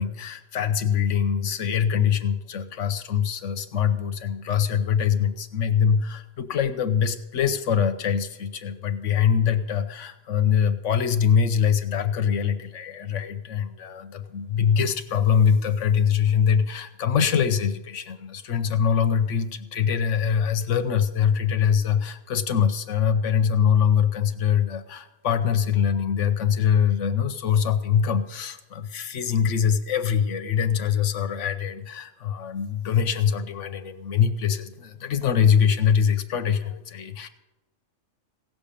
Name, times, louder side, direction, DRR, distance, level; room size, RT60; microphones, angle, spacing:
voice 1, 0.0-37.3, left 7 dB, 80° left, 9 dB, 1.1 m, -23 dB
16.5 x 6.9 x 8.5 m, 1.0 s
omnidirectional pair, 1.3 m